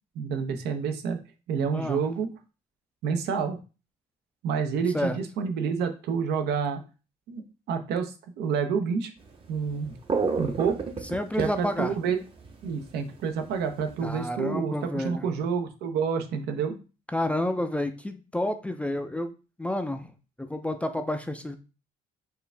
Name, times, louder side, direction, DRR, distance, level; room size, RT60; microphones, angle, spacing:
voice 1, 0.2-1.2 1.5-2.3 3.0-3.6 4.4-6.8 7.3-7.4 7.7-9.1 9.5-9.9 10.4-10.8 11.4-12.2 12.6-16.8, right 6 dB, 75° right, 7 dB, 0.7 m, -28 dB
voice 2, 1.7-2.0 4.9-5.2 11.1-11.9 14.0-15.3 17.1-20.1 20.4-21.6, left 1 dB, 5° left, 7 dB, 0.4 m, -30 dB
sound 1, 9.3-9.4 9.7-13.1 13.5-14.2, right 4 dB, 30° right, 0.8 m, -29 dB
4.6 x 2.5 x 3.3 m, 0.33 s
cardioid pair, 110°, 17 cm